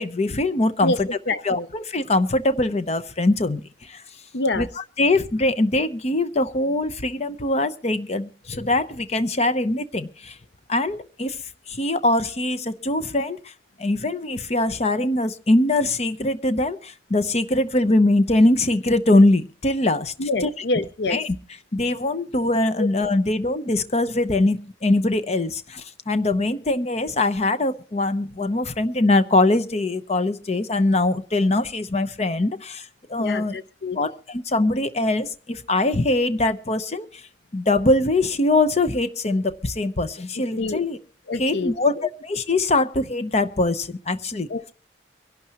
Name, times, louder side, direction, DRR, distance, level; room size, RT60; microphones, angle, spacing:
voice 1, 0.0-1.1 1.4-4.0 4.5-10.3 10.7-11.4 11.7-13.5 13.8-20.6 21.1-21.4 21.7-33.6 33.9-37.1 37.5-41.0 41.4-44.5, left 2 dB, 35° left, 0.8 m, -22 dB
voice 2, 1.3-1.7 4.3-4.7 20.2-21.2 22.8-22.9 33.2-34.0 40.6-40.9 41.3-41.7 44.5-44.7, left 2 dB, 65° left, 0.6 m, -26 dB
24.5 x 11.5 x 3.0 m
head